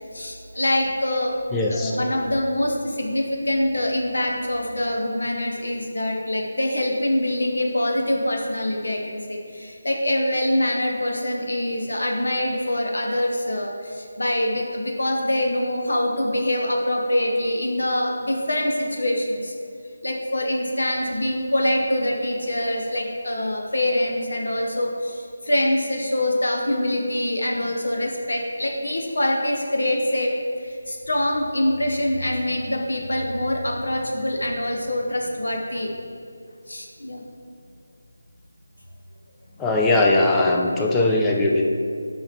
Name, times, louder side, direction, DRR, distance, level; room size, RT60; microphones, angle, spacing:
voice 1, 0.1-1.4 1.7-19.5 20.0-35.9 36.7-37.2, left 1 dB, 75° left, 1 dB, 0.9 m, -24 dB
voice 2, 1.5-1.9 39.6-41.7, left 2 dB, 10° left, -1 dB, 0.5 m, -20 dB
8.6 x 5.8 x 2.9 m, 2.4 s
figure-of-eight pair, 160°, 0 cm